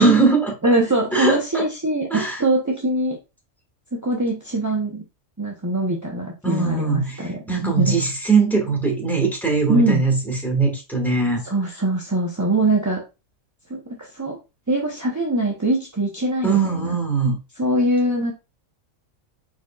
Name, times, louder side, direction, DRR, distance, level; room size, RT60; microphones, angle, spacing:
voice 1, 0.0-0.5 1.1-1.7 2.1-2.4 6.4-11.4 16.4-17.4, right 4 dB, ahead, 0 dB, 1.4 m, -20 dB
voice 2, 0.6-3.2 3.9-5.0 5.4-8.0 9.7-10.0 11.4-13.0 13.7-14.4 14.7-17.0 17.6-18.3, right 1 dB, 20° right, -2 dB, 0.5 m, -22 dB
4.6 x 4.3 x 2.3 m, 0.27 s
omnidirectional pair, 1.4 m